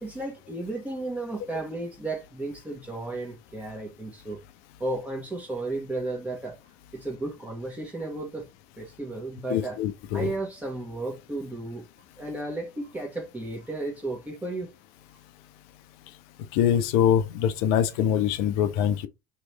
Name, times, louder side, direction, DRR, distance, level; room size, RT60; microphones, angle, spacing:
voice 1, 0.0-4.4 4.8-6.6 6.9-8.5 8.8-9.8 10.1-11.9 12.2-14.7, right 2 dB, 15° right, 1.1 m, -34 dB
voice 2, 9.5-10.3 16.5-19.1, left 9 dB, 60° left, 0.6 m, -24 dB
3.1 x 3.1 x 3.0 m
figure-of-eight pair, 60°, 10 cm